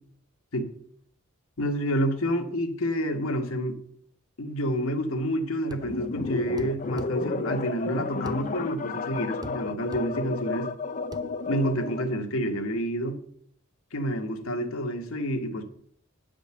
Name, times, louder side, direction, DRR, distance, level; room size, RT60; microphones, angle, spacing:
voice 1, 1.6-3.8 4.4-10.7 11.5-13.2 13.9-15.6, equal, 85° left, 1.2 m, -28 dB
sound 1, 5.7-5.9 6.6-7.1 8.3-8.4 9.4-9.6 9.9-10.1 11.1-11.3, right 1 dB, 20° right, 0.5 m, -40 dB
sound 2, 5.8-12.3, left 4 dB, 40° left, 0.4 m, -32 dB
8.4 x 5.1 x 6.9 m
head